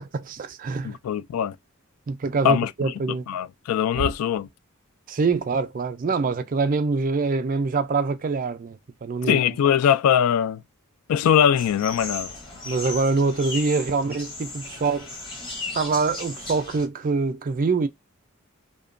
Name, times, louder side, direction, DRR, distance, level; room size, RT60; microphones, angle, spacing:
voice 1, 0.0-1.0 2.1-3.2 4.0-4.1 5.1-9.4 12.7-15.1 15.7-17.9, right 4 dB, 40° right, 0.4 m, -25 dB
voice 2, 0.8-1.6 2.4-2.7 3.3-4.5 9.3-10.6 11.1-12.3, left 9 dB, 85° left, 0.3 m, -21 dB
sound 1, 11.6-16.9, left 3 dB, 25° left, 0.9 m, -36 dB
2.8 x 2.1 x 2.5 m
head